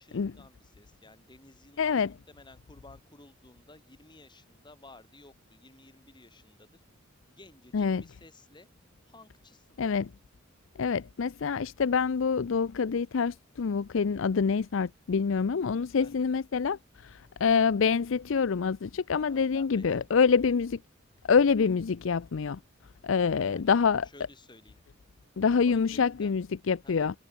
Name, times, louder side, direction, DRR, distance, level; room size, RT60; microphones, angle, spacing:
voice 1, 0.0-6.8 7.3-8.7 9.1-9.8 16.0-16.5 19.3-20.4 23.1-23.7 24.0-24.8 25.5-26.3 26.8-27.2, left 2 dB, 20° left, 3.7 m, -55 dB
voice 2, 1.8-2.1 7.7-8.0 9.8-10.1 10.8-20.8 21.3-22.6 23.0-24.1 25.4-27.1, left 5 dB, 65° left, 0.5 m, -26 dB
head